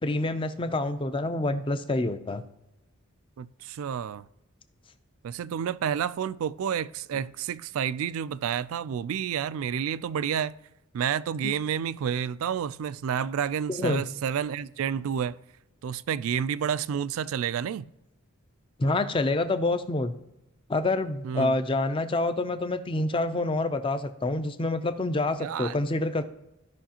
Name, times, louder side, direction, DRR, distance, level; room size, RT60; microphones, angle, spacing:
voice 1, 0.0-2.4 11.4-11.5 13.7-14.0 18.8-20.1 20.7-26.2, left 2 dB, 25° left, 0.4 m, -27 dB
voice 2, 3.4-4.2 5.2-10.5 10.9-15.4 15.8-17.9 21.2-21.6 25.4-25.8, right 8 dB, 75° right, 0.3 m, -30 dB
15.0 x 5.6 x 2.9 m
head